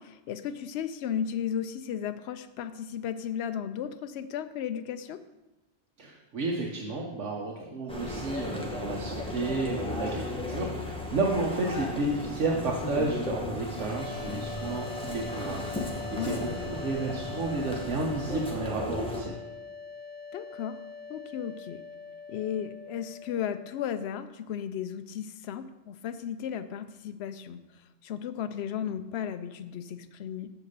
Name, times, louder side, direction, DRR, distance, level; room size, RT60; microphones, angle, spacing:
voice 1, 0.0-5.2 16.1-16.4 20.3-20.8 21.1-21.8 22.3-30.5, left 8 dB, 70° left, 10 dB, 0.8 m, -35 dB
voice 2, 6.0-19.3, right 2 dB, 90° right, -2 dB, 1.3 m, -32 dB
sound 1, 7.9-19.2, left 2 dB, 5° left, 0.9 m, -36 dB
sound 2, 13.8-23.8, left 4 dB, 35° left, 1.0 m, -43 dB
7.0 x 4.7 x 6.5 m, 1.0 s
omnidirectional pair, 1.2 m